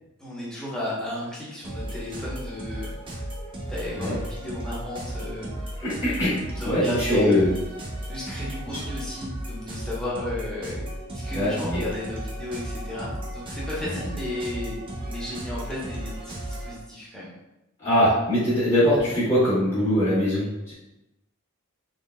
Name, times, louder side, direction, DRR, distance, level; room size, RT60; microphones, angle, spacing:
voice 1, 0.2-2.9 3.6-5.5 6.4-7.5 8.1-10.9 11.1-17.3, left 1 dB, 5° left, -8 dB, 0.9 m, -34 dB
sound 1, 1.6-16.8, right 1 dB, 25° right, 0.6 m, -35 dB
voice 2, 5.8-7.5 11.3-11.8 13.9-14.0 17.8-20.7, left 1 dB, 20° left, -14 dB, 1.2 m, -22 dB
3.7 x 3.3 x 2.2 m, 0.95 s
head